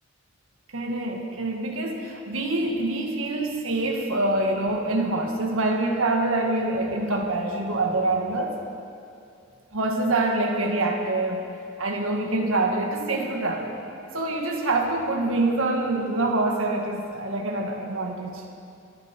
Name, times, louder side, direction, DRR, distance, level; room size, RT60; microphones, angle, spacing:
voice 1, 0.7-8.5 9.7-11.4 11.8-13.7 14.1-18.4, right 2 dB, 75° right, 1 dB, 1.7 m, -25 dB
22.0 x 10.0 x 4.4 m, 2.5 s
head